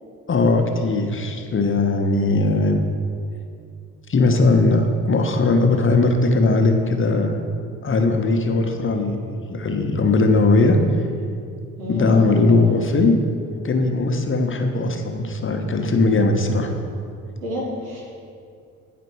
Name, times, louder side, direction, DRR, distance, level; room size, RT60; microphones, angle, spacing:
voice 1, 0.3-2.8 4.1-7.4 7.8-9.2 9.5-10.8 11.9-13.2 13.6-16.7, left 3 dB, 30° left, 4 dB, 1.0 m, -19 dB
voice 2, 11.8-12.2 12.5-12.7 17.4-18.1, equal, 85° right, -5 dB, 1.8 m, -30 dB
9.2 x 5.1 x 4.7 m, 2.4 s
figure-of-eight pair, 45°, 40 cm